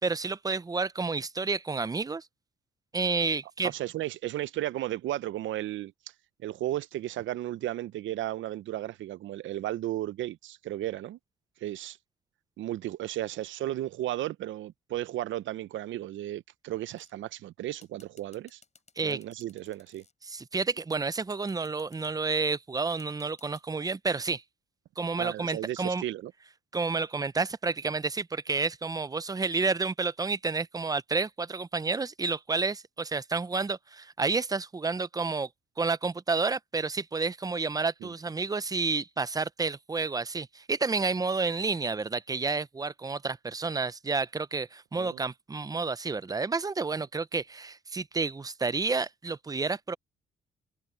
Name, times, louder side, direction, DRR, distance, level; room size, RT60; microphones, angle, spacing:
voice 1, 0.0-2.3 2.9-3.7 19.0-19.2 20.2-24.4 25.0-26.0 26.7-35.5 35.8-49.9, right 4 dB, 20° right, 0.6 m, -30 dB
voice 2, 3.6-5.9 6.4-11.2 11.6-12.0 12.6-18.6 19.0-20.0 25.2-26.3 38.0-38.1 44.9-45.2, right 14 dB, 75° right, 0.7 m, -34 dB
sound 1, 17.0-17.3 17.8-20.1 20.7-22.1 23.0-23.6, left 5 dB, 35° left, 7.3 m, -59 dB
cardioid pair, 90°, 20 cm